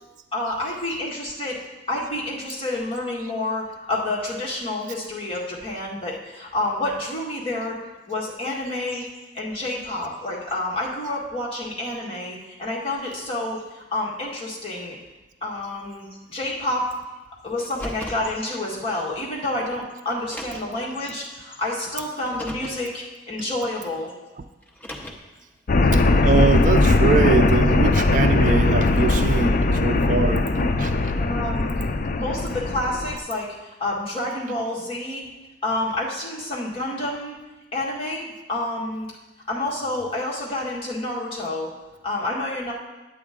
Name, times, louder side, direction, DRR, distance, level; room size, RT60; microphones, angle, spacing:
voice 1, 0.3-1.6 1.9-7.8 8.1-9.1 9.3-15.0 15.4-16.9 17.4-24.1 31.2-31.7 32.1-35.2 35.6-37.4 37.7-39.1 39.5-41.7 42.0-42.7, left 1 dB, 30° left, -5 dB, 1.9 m, -29 dB
Car, 17.6-18.3 19.4-19.5 20.2-20.8 22.1-22.8 24.6-25.4, left 1 dB, 10° left, 0.7 m, -37 dB
sound 1, 25.7-33.2, left 2 dB, 45° left, 0.4 m, -19 dB
voice 2, 25.9-31.1, right 4 dB, 45° right, 8 dB, 0.4 m, -23 dB
8.9 x 8.5 x 3.6 m, 1.1 s
head